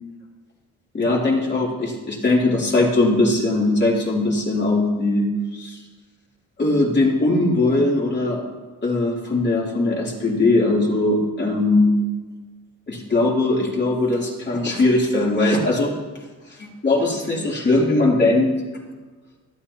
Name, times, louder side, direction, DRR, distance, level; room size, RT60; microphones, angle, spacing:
voice 1, 0.9-5.8 6.6-8.4 8.8-12.0 12.9-15.9 16.8-18.5, left 2 dB, 35° left, -3 dB, 3.0 m, -20 dB
13.0 x 12.0 x 2.8 m, 1.3 s
cardioid pair, 90°, 30 cm